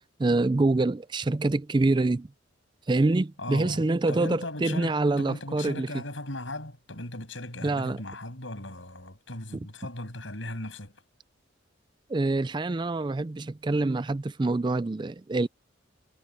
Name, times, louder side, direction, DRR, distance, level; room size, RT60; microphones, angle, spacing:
voice 1, 0.2-2.3 2.9-6.0 7.6-8.0 12.1-15.5, right 2 dB, 25° right, 0.4 m, -26 dB
voice 2, 3.4-11.0, left 1 dB, 75° left, 7.8 m, -38 dB
head